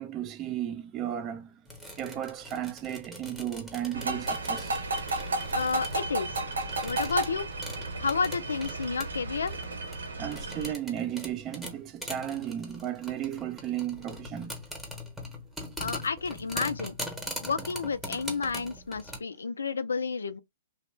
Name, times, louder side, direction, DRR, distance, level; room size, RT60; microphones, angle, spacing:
voice 1, 0.0-1.5 2.0-4.8 10.2-14.6, right 11 dB, 30° right, 0.4 m, -34 dB
sound 1, 1.7-19.2, equal, 5° right, 0.9 m, -42 dB
sound 2, 3.9-10.7, right 2 dB, 85° right, 1.0 m, -33 dB
voice 2, 5.5-6.4 6.8-7.5 8.0-9.5 15.8-16.9 17.4-20.4, left 5 dB, 90° left, 0.4 m, -31 dB
2.8 x 2.1 x 3.1 m
hypercardioid pair, 130°, 0 cm